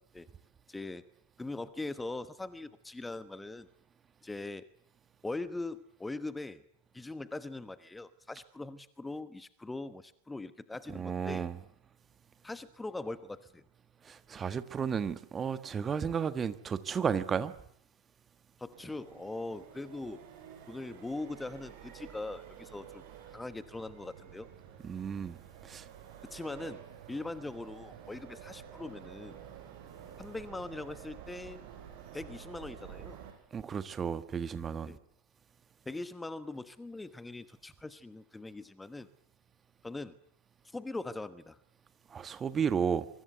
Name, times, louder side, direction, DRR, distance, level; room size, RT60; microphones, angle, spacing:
voice 1, 0.7-1.0 1.4-3.7 4.2-4.7 5.2-6.6 6.9-11.5 12.4-13.6 18.6-20.2 20.7-23.0 23.3-24.5 26.2-26.8 27.1-29.4 30.2-31.6 32.1-33.2 34.9-35.0 35.9-39.1 39.8-40.2 40.7-41.6, left 2 dB, 10° left, 1.1 m, -41 dB
voice 2, 10.9-11.6 14.0-17.5 24.8-25.4 25.6-25.9 33.5-34.9 42.1-43.1, right 7 dB, 20° right, 1.4 m, -33 dB
Accelerating revving vroom, 18.7-33.3, right 9 dB, 45° right, 6.1 m, -50 dB
25.0 x 23.5 x 8.1 m
figure-of-eight pair, 90°, 0 cm